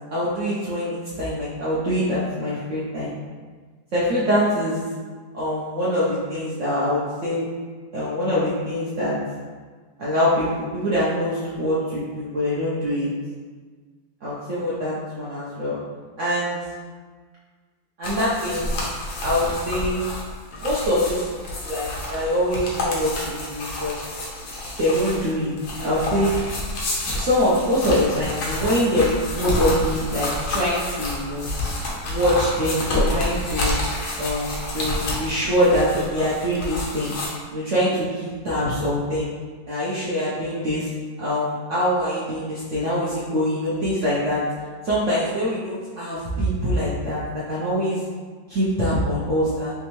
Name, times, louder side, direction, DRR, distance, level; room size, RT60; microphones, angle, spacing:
voice 1, 0.1-3.1 3.9-4.8 5.3-7.5 7.9-9.2 10.0-13.1 14.2-15.8 16.2-16.6 18.0-18.7 19.2-20.0 20.6-21.3 21.6-23.9 24.8-26.3 27.1-31.5 32.0-33.8 34.2-37.1 37.5-39.3 39.7-40.9 41.2-44.4 44.8-47.2 47.5-48.0 48.5-49.7, equal, 60° right, -9 dB, 0.9 m, -24 dB
sound 1, 18.0-37.3, left 1 dB, 80° left, 1.3 m, -29 dB
3.4 x 3.1 x 3.0 m, 1.5 s
omnidirectional pair, 1.7 m